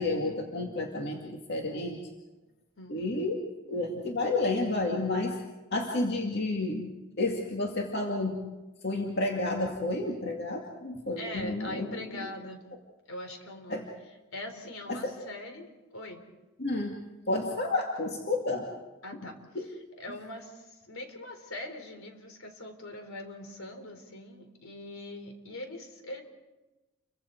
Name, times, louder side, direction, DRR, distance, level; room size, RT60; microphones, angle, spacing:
voice 1, 0.0-2.0 2.9-3.4 3.7-5.3 5.7-6.9 7.2-8.4 8.8-11.9 13.7-13.8 14.9-15.1 16.6-17.0 17.3-18.7 19.6-19.7, left 2 dB, 50° left, 0 dB, 2.3 m, -30 dB
voice 2, 2.8-3.3 11.2-12.6 13.1-16.2 19.0-26.2, left 1 dB, 70° left, 5 dB, 4.1 m, -42 dB
29.5 x 24.5 x 4.7 m, 1.1 s
head